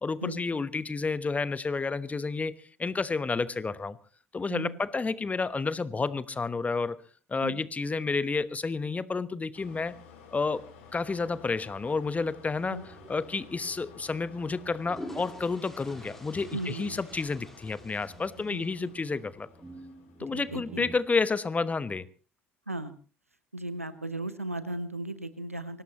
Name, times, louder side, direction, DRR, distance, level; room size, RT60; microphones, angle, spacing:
voice 1, 0.0-4.0 4.3-7.0 7.3-9.9 10.3-12.8 13.1-19.5 20.2-22.1, left 4 dB, 20° left, 1.1 m, -30 dB
voice 2, 4.5-4.8 7.4-7.6 12.7-12.9 16.5-17.1 18.5-18.9 20.3-20.9 22.7-23.0 23.5-25.8, right 2 dB, 90° right, 1.1 m, -36 dB
sound 1, 9.5-20.8, left 6 dB, 65° left, 3.8 m, -53 dB
sound 2, 12.6-17.4 18.1-21.0, right 2 dB, 15° right, 2.2 m, -51 dB
sound 3, 14.8-19.1, equal, 5° left, 4.2 m, -47 dB
24.0 x 18.5 x 3.1 m
figure-of-eight pair, 60°, 7 cm